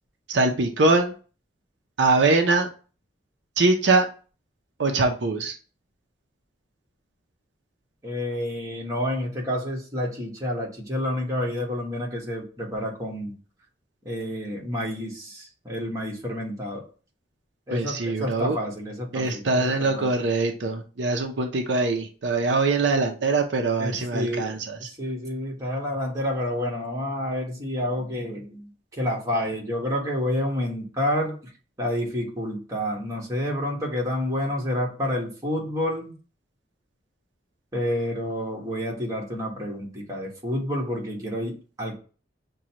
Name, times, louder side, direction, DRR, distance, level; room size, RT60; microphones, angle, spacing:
voice 1, 0.3-1.1 2.0-2.7 3.6-4.1 4.8-5.5 17.7-18.6 19.1-24.9, right 3 dB, 80° right, 3 dB, 0.6 m, -23 dB
voice 2, 8.0-13.3 14.0-16.8 17.7-20.1 23.8-31.3 31.8-36.1 37.7-42.0, left 1 dB, 20° right, -3 dB, 1.4 m, -29 dB
6.2 x 2.3 x 2.9 m, 0.37 s
head